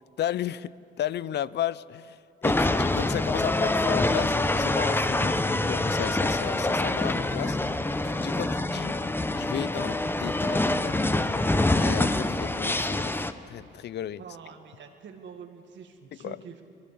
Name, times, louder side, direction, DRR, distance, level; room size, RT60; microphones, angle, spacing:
voice 1, 0.2-0.7 1.0-7.6 8.0-8.9 9.3-11.1 11.7-13.1 13.5-14.2 16.2-16.4, left 11 dB, 60° left, 19 dB, 0.5 m, -34 dB
sound 1, 2.4-13.3, left 2 dB, 10° left, 0.8 m, -25 dB
voice 2, 14.2-16.6, right 6 dB, 65° right, 4 dB, 2.0 m, -45 dB
21.5 x 21.0 x 6.9 m, 2.8 s
cardioid pair, 90°, 20 cm